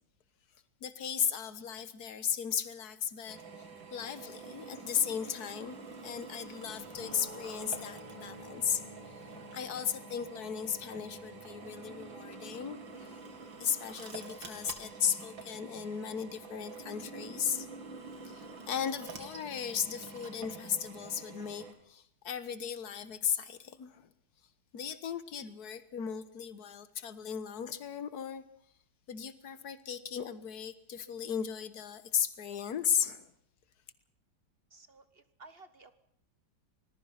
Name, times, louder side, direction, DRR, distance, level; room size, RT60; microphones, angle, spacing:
voice 1, 0.8-3.4 3.9-5.8 6.0-8.8 9.5-13.2 13.6-17.7 18.3-24.1 24.7-28.4 29.1-33.3, left 8 dB, 55° left, 13 dB, 1.7 m, -36 dB
Drill, 3.3-21.7, right 4 dB, 75° right, 3.1 m, -47 dB
sound 1, 6.6-12.2, equal, 15° left, 2.4 m, -51 dB
voice 2, 34.7-36.0, right 3 dB, 40° right, 13 dB, 0.9 m, -55 dB
25.5 x 19.5 x 5.9 m, 0.66 s
omnidirectional pair, 2.1 m